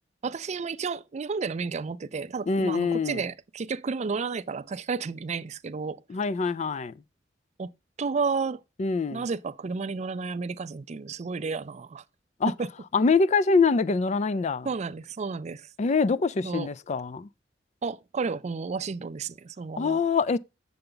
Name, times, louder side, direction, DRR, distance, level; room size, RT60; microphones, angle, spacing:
voice 1, 0.2-6.0 7.6-7.7 8.0-8.6 9.1-12.0 12.6-12.7 14.7-15.7 16.4-16.7 17.8-20.0, right 4 dB, 40° right, 0.4 m, -32 dB
voice 2, 2.5-3.2 6.1-6.9 8.8-9.2 12.4-12.5 12.9-14.7 15.8-17.3 19.8-20.4, left 4 dB, 40° left, 0.4 m, -24 dB
7.8 x 6.9 x 3.8 m
head